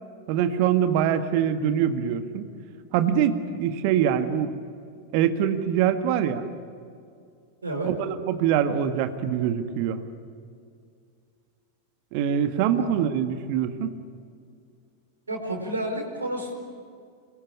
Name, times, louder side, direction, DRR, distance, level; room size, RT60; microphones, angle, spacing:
voice 1, 0.3-2.5 2.9-4.6 5.1-6.4 7.8-10.0 12.1-13.9, right 9 dB, 45° right, 9 dB, 1.8 m, -24 dB
voice 2, 15.3-16.6, right 1 dB, 75° right, 2 dB, 4.6 m, -30 dB
26.0 x 21.5 x 8.6 m, 2.3 s
figure-of-eight pair, 90°, 0 cm